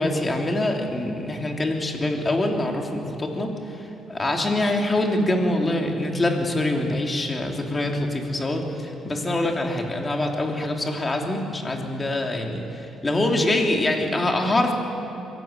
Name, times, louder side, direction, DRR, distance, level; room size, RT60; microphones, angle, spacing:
voice 1, 0.0-3.5 3.8-14.7, left 1 dB, 25° left, 2 dB, 3.1 m, -24 dB
24.0 x 16.5 x 8.2 m, 2.7 s
cardioid pair, 90°, 0 cm